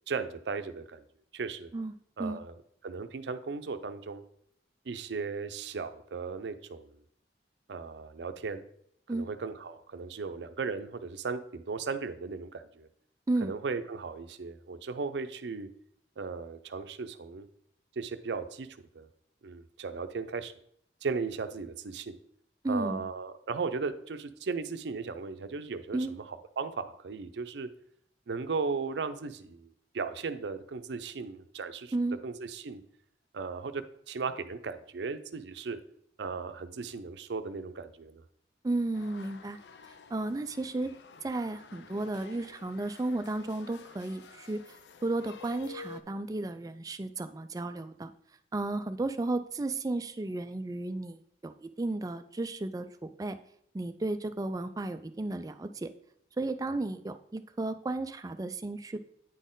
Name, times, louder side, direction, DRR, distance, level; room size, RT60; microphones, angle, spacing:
voice 1, 0.1-1.0 1.3-1.7 2.2-2.5 2.8-4.2 4.9-6.9 7.7-8.6 9.1-12.9 13.4-15.7 16.2-17.5 18.0-18.7 18.9-19.1 19.4-20.5 21.0-22.2 22.7-27.7 28.3-29.7 29.9-31.9 32.2-32.8 33.3-35.8 36.2-38.2, right 4 dB, 75° right, 10 dB, 0.5 m, -36 dB
voice 2, 22.6-23.1 25.9-26.1 31.9-32.2 38.6-39.6 40.1-40.9 41.2-44.8 45.0-48.1 48.5-53.4 53.7-55.9 56.4-59.0, right 2 dB, 20° right, 10 dB, 0.3 m, -33 dB
sound 1, 38.9-46.0, left 5 dB, 75° left, 0.5 m, -51 dB
9.0 x 4.2 x 3.8 m, 0.68 s
head